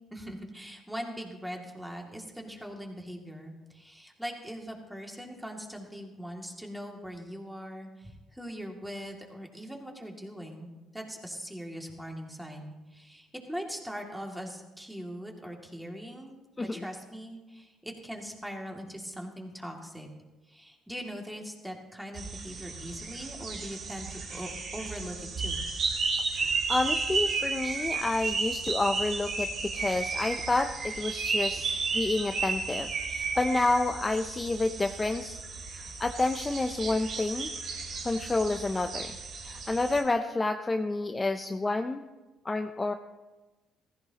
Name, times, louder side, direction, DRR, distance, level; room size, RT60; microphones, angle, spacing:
voice 1, 0.1-10.7 10.9-20.1 20.5-25.6, equal, 5° right, 1 dB, 2.4 m, -41 dB
sound 1, 22.1-40.0, right 4 dB, 60° right, 2.9 m, -33 dB
voice 2, 26.3-35.4 35.7-37.5 38.0-39.2 39.4-42.0 42.4-42.9, left 2 dB, 20° left, 7 dB, 0.6 m, -29 dB
16.0 x 14.5 x 2.9 m, 1.1 s
cardioid pair, 85°, 0 cm